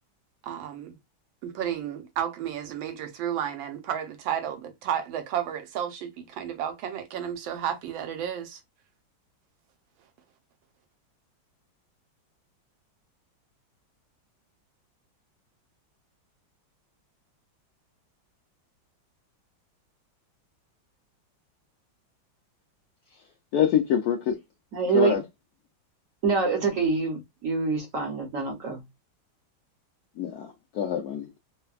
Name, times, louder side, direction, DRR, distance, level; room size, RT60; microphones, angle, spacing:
voice 1, 0.4-1.0 1.4-8.6, right 9 dB, 85° right, 1.4 m, -32 dB
voice 2, 23.5-24.4 24.9-25.2 30.2-31.4, left 9 dB, 75° left, 0.9 m, -25 dB
voice 3, 24.7-25.2 26.2-28.8, right 4 dB, 55° right, 0.9 m, -25 dB
3.3 x 2.1 x 2.3 m
omnidirectional pair, 2.1 m